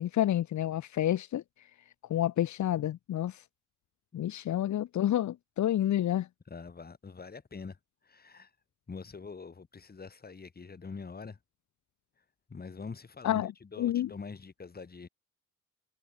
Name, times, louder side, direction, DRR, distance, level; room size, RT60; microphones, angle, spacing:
voice 1, 0.0-1.4 2.1-3.4 4.1-6.3 13.2-13.5 13.8-14.1, left 12 dB, 70° left, 2.0 m, -29 dB
voice 2, 6.5-7.8 8.0-8.5 8.9-11.4 12.5-15.1, left 4 dB, 30° left, 4.9 m, -44 dB
cardioid pair, 90°, 30 cm